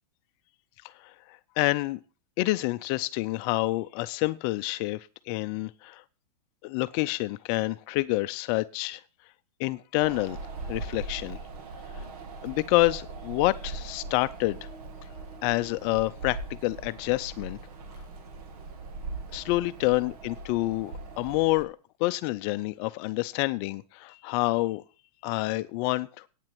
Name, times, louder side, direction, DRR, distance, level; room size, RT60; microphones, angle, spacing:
voice 1, 1.6-2.0 2.4-5.0 5.3-6.0 6.6-9.0 9.6-10.4 10.7-11.4 12.0-12.1 12.4-14.6 15.4-17.6 19.3-24.8 25.2-26.1, left 20 dB, 40° left, 0.6 m, -28 dB
Wind, 10.0-21.6, right 3 dB, 65° right, 2.3 m, -40 dB
9.2 x 7.5 x 7.7 m
hypercardioid pair, 140°, 20 cm